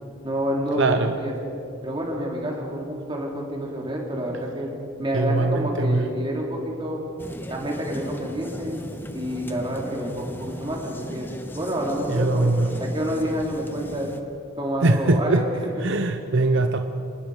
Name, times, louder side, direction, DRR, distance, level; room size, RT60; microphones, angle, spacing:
voice 1, 0.2-1.3 1.8-4.7 5.0-7.0 7.5-11.3 11.6-12.5 12.8-14.1 14.6-15.8, equal, 20° right, -1 dB, 3.4 m, -28 dB
voice 2, 0.8-1.1 5.1-6.0 12.1-12.7 14.8-15.5 15.8-16.8, right 2 dB, 55° right, 6 dB, 0.9 m, -21 dB
sound 1, 7.2-14.2, equal, 10° left, 0.9 m, -38 dB
27.0 x 20.5 x 5.0 m, 2.5 s
head